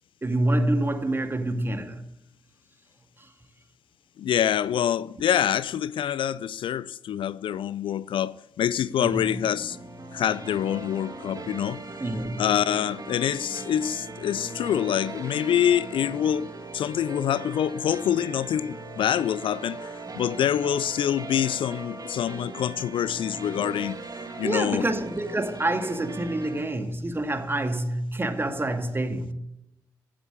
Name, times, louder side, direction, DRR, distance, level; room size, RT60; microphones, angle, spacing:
voice 1, 0.2-2.0 9.0-9.3 12.0-12.4 24.4-29.3, right 1 dB, 25° right, 2.1 m, -27 dB
voice 2, 4.2-9.8 10.1-11.8 12.4-24.0 24.4-24.9, left 10 dB, 60° left, 0.4 m, -26 dB
sound 1, 9.2-26.6, right 3 dB, 40° right, 2.4 m, -39 dB
15.0 x 7.6 x 8.6 m
hypercardioid pair, 40°, 10 cm